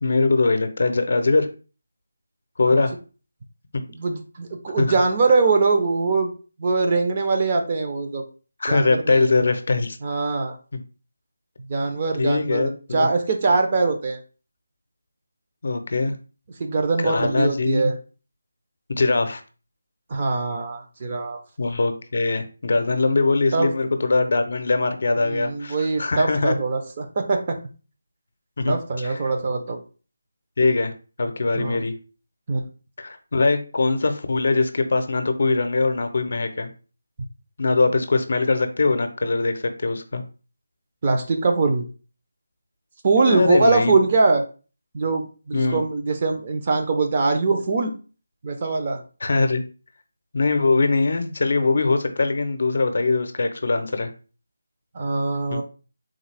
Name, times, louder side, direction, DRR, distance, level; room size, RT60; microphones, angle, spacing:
voice 1, 0.0-1.5 2.6-2.9 4.8-4.9 8.6-10.0 10.7-10.8 12.2-13.1 15.6-16.2 17.0-17.9 18.9-19.4 21.6-26.5 28.6-29.2 30.6-30.9 31.2-31.9 33.0-36.7 37.6-40.2 43.2-44.0 45.5-45.8 49.2-49.6 50.3-54.1 55.5-55.6, left 3 dB, 60° left, 8 dB, 0.6 m, -22 dB
voice 2, 3.9-6.3 6.6-8.2 8.7-9.3 10.0-10.5 11.7-14.2 16.6-18.0 20.1-21.4 23.5-23.7 25.2-27.6 28.7-29.8 31.5-31.8 32.5-32.6 41.0-41.8 43.0-44.4 44.9-47.9 48.4-49.0 54.9-55.6, right 3 dB, 35° right, 4 dB, 0.6 m, -22 dB
3.7 x 2.3 x 3.3 m, 0.36 s
figure-of-eight pair, 165°, 0 cm